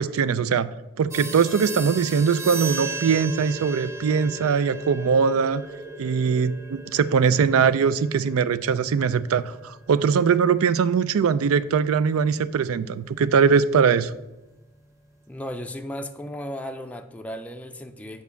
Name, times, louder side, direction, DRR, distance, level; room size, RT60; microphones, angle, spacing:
voice 1, 0.0-5.6 6.0-14.1, right 6 dB, 80° right, 16 dB, 0.4 m, -21 dB
sound 1, 1.1-11.3, right 3 dB, 15° right, 0.8 m, -38 dB
sound 2, 2.1-10.4, equal, 35° right, 1.5 m, -42 dB
voice 2, 15.3-18.2, equal, 5° left, 5 dB, 0.4 m, -35 dB
7.2 x 4.6 x 6.9 m, 1.0 s
head